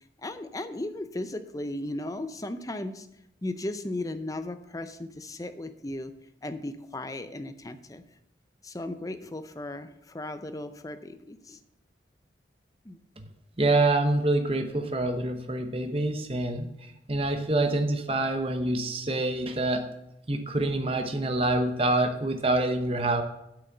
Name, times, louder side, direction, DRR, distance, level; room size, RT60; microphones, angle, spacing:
voice 1, 0.2-3.1 3.4-6.1 6.4-8.0 8.6-11.6 12.8-13.0, left 1 dB, 20° left, 9 dB, 0.6 m, -36 dB
voice 2, 13.6-16.7 17.1-19.9 20.3-23.2, right 2 dB, 30° right, 6 dB, 0.9 m, -26 dB
8.2 x 6.4 x 6.7 m, 0.84 s
head